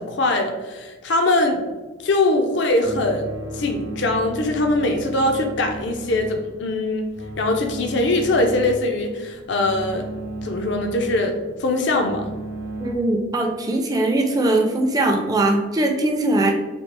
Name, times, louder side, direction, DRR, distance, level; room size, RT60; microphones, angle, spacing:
voice 1, 0.0-1.6 2.0-7.1 7.4-10.1 10.4-11.3 11.6-12.2, left 2 dB, 60° left, 4 dB, 0.5 m, -22 dB
sound 1, 2.8-13.0, right 2 dB, 85° right, 0.7 m, -35 dB
voice 2, 12.8-16.5, right 2 dB, 20° right, 2 dB, 0.4 m, -20 dB
4.3 x 2.4 x 3.3 m, 1.2 s
head